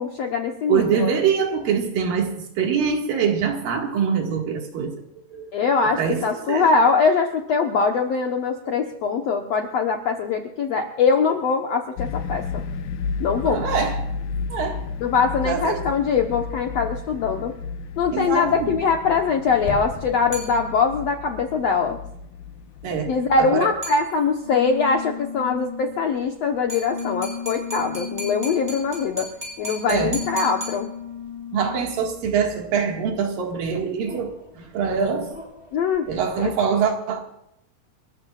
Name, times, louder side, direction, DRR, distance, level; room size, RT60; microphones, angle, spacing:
voice 1, 0.0-1.1 5.5-12.6 13.2-13.6 15.0-17.5 18.0-22.0 23.1-29.3 29.6-30.9 35.7-36.1 36.4-36.5, left 5 dB, 70° left, 3 dB, 1.6 m, -22 dB
voice 2, 0.7-5.0 5.3-5.5 5.9-6.7 13.4-14.1 14.5-14.9 15.5-15.8 18.1-18.8 22.8-23.1 23.4-23.7 29.9-30.2 31.5-35.3 36.1-37.2, right 6 dB, 65° right, 3 dB, 3.5 m, -24 dB
sound 1, 12.0-23.5, left 5 dB, 90° left, 1.7 m, -33 dB
sound 2, 16.9-36.6, left 5 dB, 30° left, 1.1 m, -37 dB
sound 3, 20.3-21.1 23.8-24.6 26.7-31.4, right 1 dB, 20° right, 7.2 m, -37 dB
29.0 x 14.0 x 2.4 m, 0.79 s
omnidirectional pair, 4.4 m